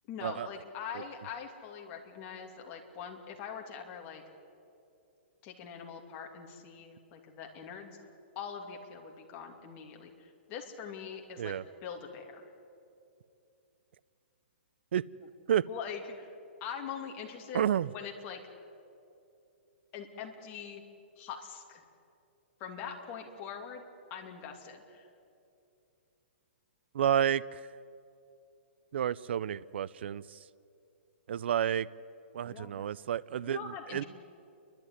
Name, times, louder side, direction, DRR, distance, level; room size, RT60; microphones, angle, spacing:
voice 1, 0.1-4.2 5.4-8.0 8.3-12.4 15.7-16.3 16.6-17.6 17.9-18.4 19.9-20.8 21.2-21.8 22.6-23.8 24.1-25.1 32.5-32.9 33.4-34.1, left 7 dB, 30° left, 2 dB, 2.8 m, -43 dB
voice 2, 17.5-17.9 26.9-27.6 28.9-30.4 31.3-31.9 32.3-33.6 33.9-34.0, right 9 dB, 65° right, 19 dB, 0.5 m, -30 dB
29.5 x 12.0 x 9.8 m, 2.7 s
hypercardioid pair, 155°, 6 cm